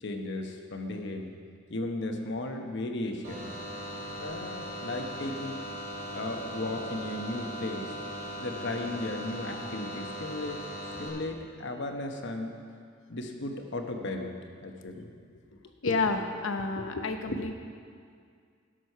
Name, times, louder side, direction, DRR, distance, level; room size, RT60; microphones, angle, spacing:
voice 1, 0.0-1.3 1.7-3.6 4.2-5.6 6.1-7.9 8.4-10.6 11.0-12.5 13.1-14.3 14.6-15.1 17.3-17.4, left 2 dB, 60° left, 4 dB, 1.0 m, -35 dB
sound 1, 3.2-11.1, equal, 45° right, 2.7 m, -39 dB
voice 2, 15.8-17.6, left 3 dB, 85° left, 6 dB, 0.8 m, -29 dB
12.5 x 6.2 x 5.6 m, 2.2 s
head